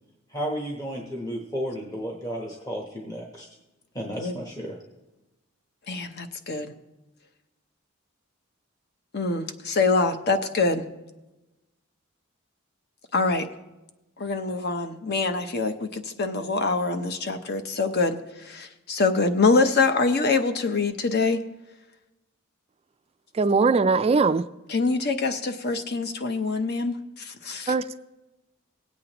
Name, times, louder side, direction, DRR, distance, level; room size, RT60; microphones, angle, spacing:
voice 1, 0.3-3.5 3.9-4.8, equal, 15° left, 1.0 m, -33 dB
voice 2, 5.9-6.7 9.1-10.8 13.1-13.5 14.2-21.4 24.7-27.7, left 3 dB, 50° left, 0.8 m, -25 dB
voice 3, 23.3-24.5 27.7-28.0, right 4 dB, 30° right, 0.3 m, -21 dB
18.5 x 8.3 x 3.0 m
head